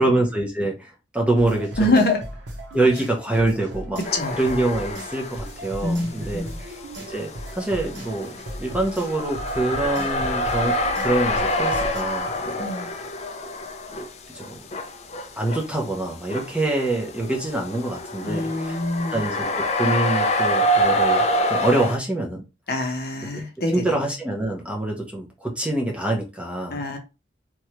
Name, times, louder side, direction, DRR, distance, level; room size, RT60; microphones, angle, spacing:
voice 1, 0.0-2.0 2.7-4.0 4.3-6.8 7.1-13.0 14.0-14.1 14.3-14.7 15.4-18.8 19.1-22.4 22.8-22.9 23.3-23.4 23.7-27.0, right 2 dB, 5° right, 0 dB, 0.6 m, -25 dB
sound 1, 1.4-12.0, right 1 dB, 75° right, 0.9 m, -37 dB
voice 2, 1.8-2.2 4.1-4.4 5.8-6.6 12.6-12.9 18.2-19.2 22.7-23.8 26.7-27.0, left 2 dB, 55° left, 3 dB, 0.8 m, -24 dB
sound 2, 4.0-5.6 5.9-22.0, equal, 35° left, 0.4 m, -26 dB
3.1 x 2.3 x 2.9 m, 0.27 s
head